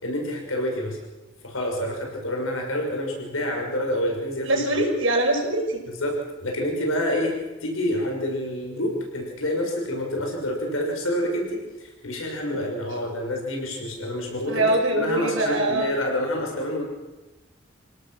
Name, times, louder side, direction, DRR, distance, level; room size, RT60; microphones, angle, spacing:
voice 1, 0.0-1.0 1.4-4.6 6.0-6.2 6.4-14.7 14.9-16.8, left 1 dB, 85° left, 1 dB, 6.2 m, -28 dB
voice 2, 4.5-5.8 14.5-15.9, right 2 dB, 70° right, 1 dB, 5.9 m, -23 dB
28.0 x 17.5 x 6.4 m, 1.1 s
head